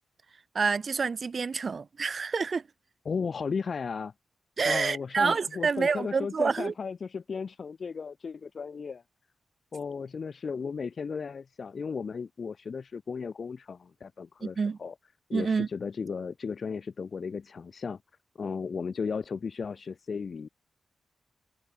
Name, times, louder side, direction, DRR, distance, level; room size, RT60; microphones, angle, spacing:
voice 1, 0.5-2.6 4.6-6.7 14.4-14.8 15.3-15.7, right 5 dB, 50° right, 0.5 m, -28 dB
voice 2, 3.0-4.1 4.6-9.0 9.7-14.9 15.3-18.0 18.4-20.5, left 5 dB, 55° left, 1.5 m, -35 dB
cardioid pair, 60°, 0 cm